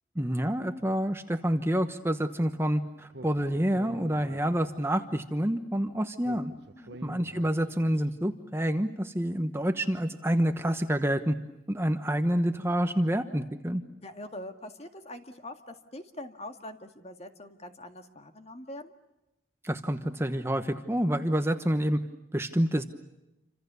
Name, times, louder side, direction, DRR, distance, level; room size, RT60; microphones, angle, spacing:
voice 1, 0.1-6.5 7.0-11.4 11.7-13.8 19.6-22.0 22.3-22.8, equal, 15° right, 8 dB, 1.1 m, -28 dB
Speech, 3.1-4.9 6.2-8.0, right 2 dB, 65° right, 1.1 m, -47 dB
voice 2, 14.0-18.9, left 1 dB, 35° left, 6 dB, 2.0 m, -43 dB
28.5 x 26.0 x 7.0 m, 0.95 s
head